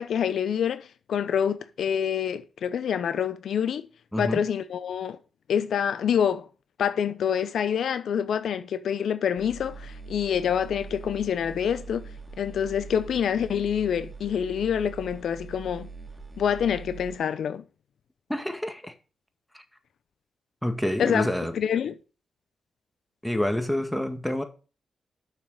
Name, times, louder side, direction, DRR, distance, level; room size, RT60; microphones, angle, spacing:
voice 1, 0.0-3.8 4.2-5.2 5.5-6.5 6.8-12.0 12.4-15.9 16.4-17.6 21.0-21.3 21.5-21.9, left 8 dB, 75° left, 0.6 m, -26 dB
voice 2, 4.1-4.4 18.3-18.9 19.5-19.6 20.6-21.5 23.2-24.4, left 1 dB, 5° left, 1.8 m, -28 dB
sound 1, 9.4-17.2, right 4 dB, 20° right, 2.4 m, -42 dB
6.8 x 6.1 x 6.5 m
supercardioid pair, 45°, 0 cm